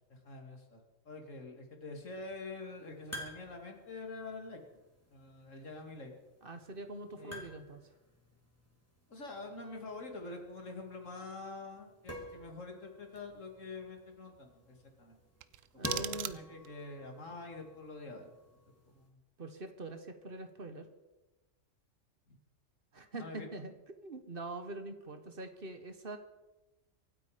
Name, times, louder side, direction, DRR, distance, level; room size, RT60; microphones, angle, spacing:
voice 1, 0.1-0.8 1.1-4.6 5.1-6.1 7.2-7.4 9.1-15.2 15.7-18.4 18.9-19.2 22.3-22.4 23.2-23.5, left 3 dB, 80° left, 3 dB, 2.7 m, -46 dB
sound 1, 1.9-19.1, left 1 dB, 10° left, 3.0 m, -51 dB
voice 2, 6.4-7.9 15.7-16.4 19.4-20.9 22.9-23.7 24.0-26.2, right 2 dB, 45° right, 9 dB, 1.4 m, -44 dB
sound 2, 15.4-16.8, right 11 dB, 85° right, 1.1 m, -40 dB
24.5 x 8.7 x 5.0 m, 1.0 s
omnidirectional pair, 1.3 m